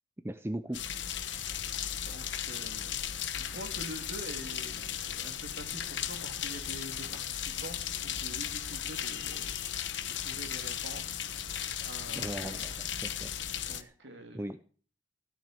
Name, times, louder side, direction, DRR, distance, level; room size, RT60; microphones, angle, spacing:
voice 1, 0.2-0.8 12.1-13.3 13.8-13.9 14.3-14.6, right 1 dB, 15° right, 10 dB, 0.6 m, -38 dB
sound 1, 0.7-13.8, left 9 dB, 70° left, 1.2 m, -36 dB
voice 2, 2.0-3.1 3.3-9.5 9.7-11.2 11.8-12.9 13.7-14.5, right 1 dB, 65° right, 4 dB, 3.1 m, -46 dB
16.0 x 10.5 x 5.2 m, 0.42 s
head